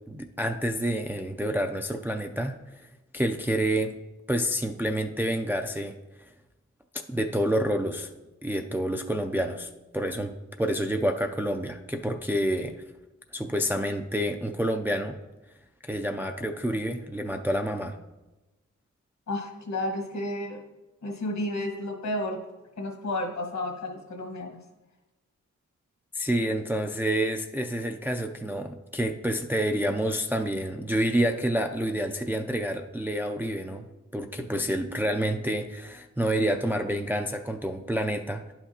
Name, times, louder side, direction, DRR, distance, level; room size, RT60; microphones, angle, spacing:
voice 1, 0.1-2.5 3.1-3.9 4.3-6.0 7.1-8.1 8.4-12.7 13.3-15.2 15.8-18.0 26.1-33.9 34.1-38.5, right 1 dB, 5° right, 4 dB, 0.3 m, -28 dB
voice 2, 19.3-20.6 21.0-22.4 22.8-24.6, left 1 dB, 65° left, 3 dB, 1.3 m, -32 dB
10.5 x 5.8 x 2.8 m, 1.0 s
wide cardioid pair, 110°, 29 cm